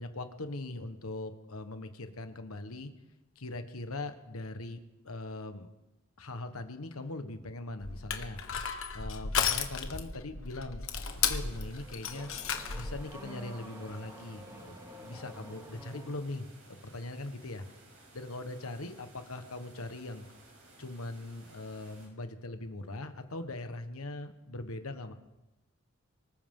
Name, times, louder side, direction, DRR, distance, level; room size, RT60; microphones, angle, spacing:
voice 1, 0.0-2.9 3.3-5.7 6.2-8.4 8.9-10.8 11.3-12.3 12.7-14.8 15.0-17.6 18.1-20.3 20.8-25.1, left 2 dB, 85° left, 8 dB, 1.3 m, -41 dB
Crushing, 7.8-13.0, left 7 dB, 70° left, 1.3 m, -34 dB
sound 1, 10.9-22.1, right 2 dB, 70° right, 5.3 m, -57 dB
Car / Accelerating revving vroom, 11.5-16.4, right 1 dB, 15° right, 2.2 m, -49 dB
24.5 x 14.0 x 3.8 m, 1.0 s
head